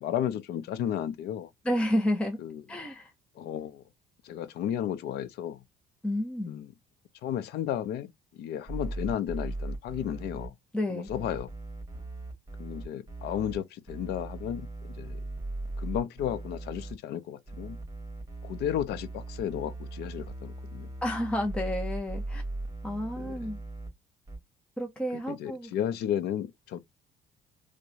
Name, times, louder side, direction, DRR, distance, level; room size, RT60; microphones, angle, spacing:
voice 1, 0.0-1.5 2.4-2.6 3.4-3.8 4.2-5.6 6.5-6.7 7.2-10.5 10.9-11.5 12.6-15.2 15.8-17.8 18.4-20.9 23.2-23.5 25.3-26.8, left 10 dB, 75° left, 0.6 m, -33 dB
voice 2, 1.6-2.4 2.7-3.1 6.0-6.6 10.7-11.1 21.0-22.4 22.8-23.6 24.8-25.7, left 1 dB, 5° left, 0.6 m, -30 dB
sound 1, 8.7-10.5 11.1-13.6 13.9-16.9 17.5-23.9 24.3-24.4, right 2 dB, 20° right, 1.8 m, -38 dB
4.7 x 2.2 x 2.6 m
cardioid pair, 110°, 17 cm